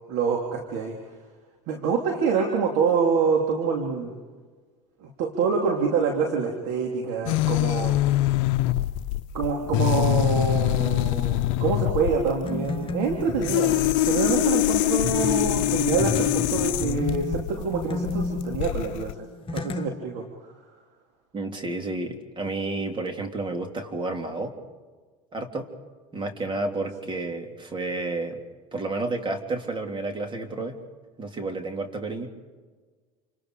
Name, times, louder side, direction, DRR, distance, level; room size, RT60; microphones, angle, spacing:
voice 1, 0.1-0.9 1.7-4.1 5.0-8.0 9.3-19.1 19.5-20.2, right 5 dB, 75° right, 1 dB, 3.4 m, -26 dB
sound 1, 7.3-19.1, left 15 dB, 75° left, 0.7 m, -24 dB
sound 2, 12.4-14.1 15.0-19.9, left 3 dB, 30° left, 1.6 m, -32 dB
voice 2, 21.3-24.5 25.3-25.7 26.1-28.4 28.7-30.8 31.2-32.3, right 2 dB, 30° right, 4 dB, 3.6 m, -31 dB
28.5 x 27.0 x 5.0 m, 1.4 s
supercardioid pair, 90°, 17 cm